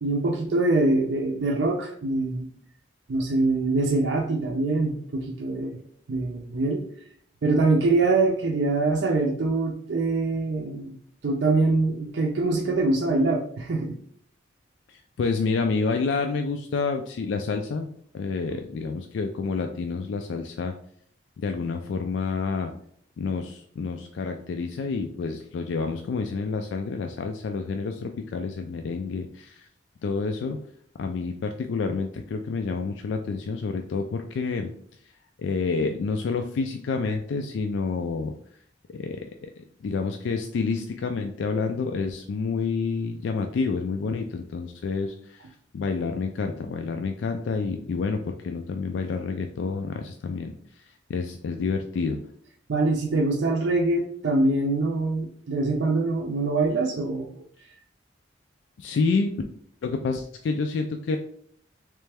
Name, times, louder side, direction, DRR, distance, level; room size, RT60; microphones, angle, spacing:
voice 1, 0.0-2.5 3.1-5.8 6.1-6.9 7.4-11.0 11.2-14.0 52.7-57.3, right 2 dB, 70° right, 0 dB, 0.5 m, -24 dB
voice 2, 14.9-17.9 18.1-20.7 21.4-22.7 23.2-29.7 30.0-30.6 31.0-34.7 35.4-38.3 38.9-39.5 39.8-50.5 51.1-52.2 58.8-59.3 59.8-61.2, left 4 dB, 75° left, 5 dB, 0.3 m, -28 dB
3.3 x 3.2 x 3.3 m, 0.62 s
head